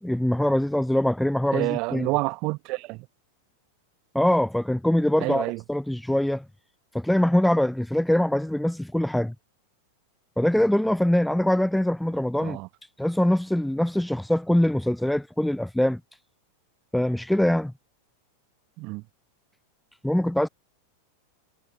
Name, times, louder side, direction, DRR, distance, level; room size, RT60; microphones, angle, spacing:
voice 1, 0.0-2.1 4.1-6.4 6.9-9.3 10.4-12.6 13.0-16.0 16.9-17.7 20.0-20.5, left 1 dB, ahead, 0.4 m, -23 dB
voice 2, 1.5-3.1 5.2-5.6 12.4-12.7 18.8-19.0, right 25 dB, 40° right, 1.2 m, -28 dB
figure-of-eight pair, 90°, 0 cm